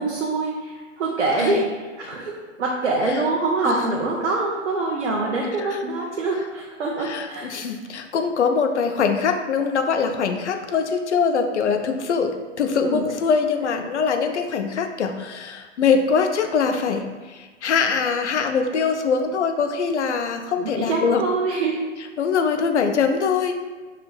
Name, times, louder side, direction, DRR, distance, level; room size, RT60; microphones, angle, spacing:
voice 1, 0.0-7.6 12.8-13.1 20.6-21.8, right 3 dB, 70° right, -2 dB, 0.6 m, -25 dB
voice 2, 3.7-4.0 5.6-5.8 7.0-21.2 22.2-23.6, left 5 dB, 70° left, 6 dB, 0.5 m, -23 dB
5.6 x 2.4 x 2.2 m, 1.4 s
figure-of-eight pair, 120°, 36 cm